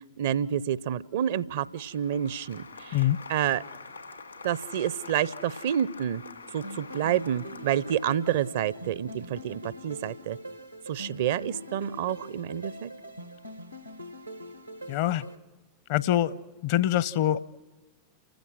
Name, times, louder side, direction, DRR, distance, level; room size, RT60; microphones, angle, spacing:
voice 1, 0.2-3.0 3.3-3.6 4.4-6.2 6.5-10.4 10.9-12.9, right 10 dB, 55° right, 20 dB, 0.6 m, -28 dB
Applause, 1.6-8.5, left 4 dB, 80° left, 2.3 m, -46 dB
sound 1, 6.6-15.3, equal, 90° right, 1.3 m, -43 dB
voice 2, 14.9-15.2 15.9-16.4 16.6-17.4, left 13 dB, 50° left, 18 dB, 0.7 m, -24 dB
29.5 x 15.5 x 6.2 m, 1.3 s
figure-of-eight pair, 90°, 0 cm